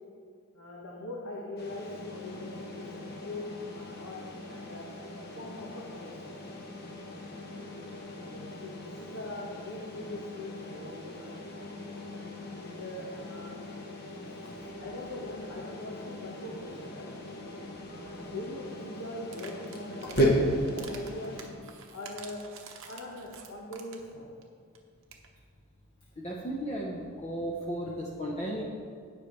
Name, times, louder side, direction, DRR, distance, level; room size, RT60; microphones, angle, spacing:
voice 1, 0.5-3.5 3.7-4.2 4.5-4.9 5.3-6.4 8.2-11.4 12.6-13.6 14.4-17.1 17.9-21.4 21.8-22.5 22.9-24.3, left 2 dB, 70° left, -4 dB, 1.4 m, -42 dB
sound 1, 1.6-21.5, equal, 45° left, 1.3 m, -36 dB
sound 2, 19.2-20.3 20.7-24.1 24.4-24.5 24.7-24.8 25.0-25.3, right 6 dB, 60° right, 1.0 m, -47 dB
voice 2, 26.2-28.6, right 1 dB, 30° left, -2 dB, 0.8 m, -35 dB
17.5 x 5.8 x 3.2 m, 2.1 s
head